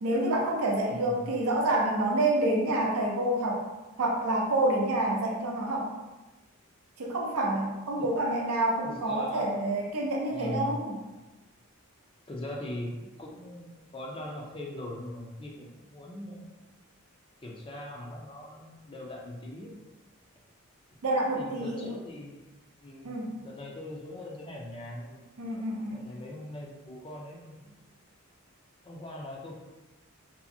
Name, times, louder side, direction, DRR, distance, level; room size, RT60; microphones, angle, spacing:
voice 1, 0.0-3.6 4.0-5.9 7.0-11.0 21.0-21.9 23.0-23.3 25.4-26.0, right 1 dB, 85° right, 0 dB, 0.6 m, -28 dB
voice 2, 0.9-1.3 8.0-8.1 8.8-9.8 10.3-10.8 12.3-16.6 17.4-19.8 21.3-22.4 22.8-23.1 23.4-25.3 25.9-27.7 28.8-29.5, left 1 dB, 25° left, -2 dB, 0.4 m, -41 dB
2.7 x 2.5 x 2.5 m, 1.1 s
head